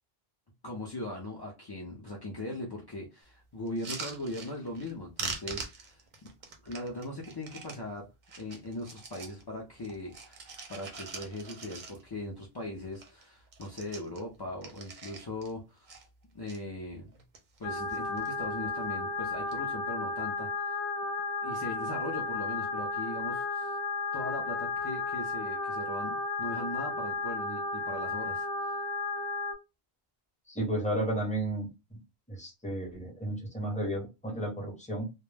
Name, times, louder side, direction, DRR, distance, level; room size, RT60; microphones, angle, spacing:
voice 1, 0.6-6.3 6.6-8.1 8.4-10.4 10.7-16.0 16.3-17.2 17.6-20.8 21.4-23.8 24.1-28.7, left 1 dB, 40° left, -2 dB, 0.3 m, -39 dB
sound 1, 3.7-4.9 5.2-7.8 8.2-9.4 9.8-12.3 12.6-12.7 12.9-13.2 13.5-15.5 15.9-16.6 17.1-17.6 17.9-18.4 19.3-19.6, right 4 dB, 55° right, 0.6 m, -43 dB
sound 2, 17.6-29.5, left 3 dB, 70° left, 0.8 m, -33 dB
voice 2, 30.5-32.0 32.3-35.1, right 1 dB, 10° left, -1 dB, 0.7 m, -33 dB
2.2 x 2.0 x 3.2 m, 0.26 s
omnidirectional pair, 1.1 m